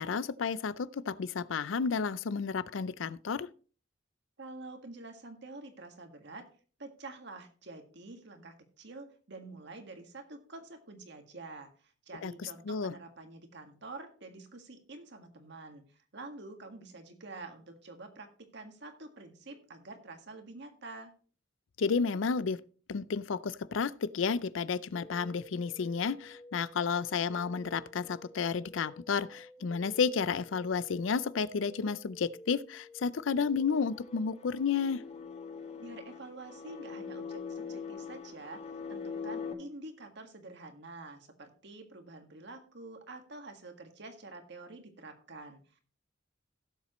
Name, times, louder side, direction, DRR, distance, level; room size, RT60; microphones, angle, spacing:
voice 1, 0.0-3.5 12.2-12.9 21.8-22.6 22.9-35.0, left 5 dB, 80° left, 0.5 m, -32 dB
voice 2, 4.4-6.5 6.8-21.1 35.8-45.6, right 2 dB, 65° right, 1.8 m, -47 dB
sound 1, 24.9-34.5, left 1 dB, 15° left, 1.0 m, -53 dB
sound 2, 33.6-39.5, left 6 dB, 35° left, 1.6 m, -42 dB
16.5 x 7.4 x 3.1 m
head